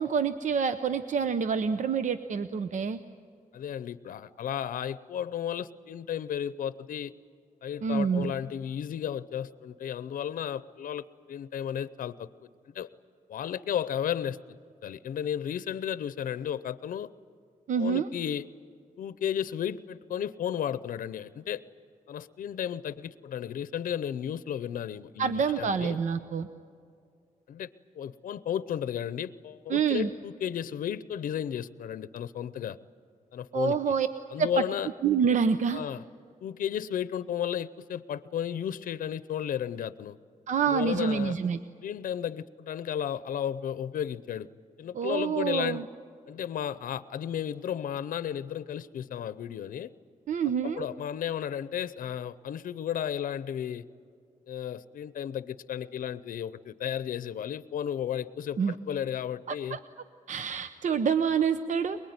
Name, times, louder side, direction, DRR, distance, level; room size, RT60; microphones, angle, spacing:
voice 1, 0.0-3.0 7.8-8.3 17.7-18.1 25.2-26.5 29.7-30.1 33.5-34.1 34.4-34.5 35.0-35.8 40.5-41.6 44.9-45.8 50.3-50.9 58.6-58.7 59.5-59.8 60.3-62.0, right 6 dB, 65° right, 11 dB, 0.8 m, -27 dB
voice 2, 3.5-7.1 7.6-12.3 12.7-12.9 13.3-14.6 14.8-17.1 17.8-18.4 19.0-21.6 22.1-26.0 27.5-27.7 27.9-32.8 33.3-33.8 34.3-34.9 35.7-36.0 36.4-40.2 40.7-41.3 41.8-44.5 44.8-45.8 46.3-49.9 50.6-53.8 54.5-59.8, left 9 dB, 85° left, 15 dB, 0.7 m, -33 dB
23.5 x 22.0 x 9.5 m, 2.3 s
wide cardioid pair, 135°, 14 cm